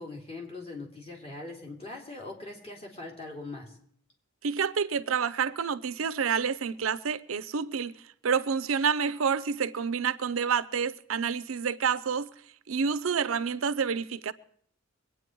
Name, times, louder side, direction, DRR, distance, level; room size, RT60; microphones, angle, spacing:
voice 1, 0.0-3.8, left 2 dB, 30° left, 3.1 m, -41 dB
voice 2, 4.4-8.0 8.2-12.3 12.7-14.3, right 6 dB, 90° right, 0.6 m, -28 dB
23.0 x 9.2 x 4.6 m
head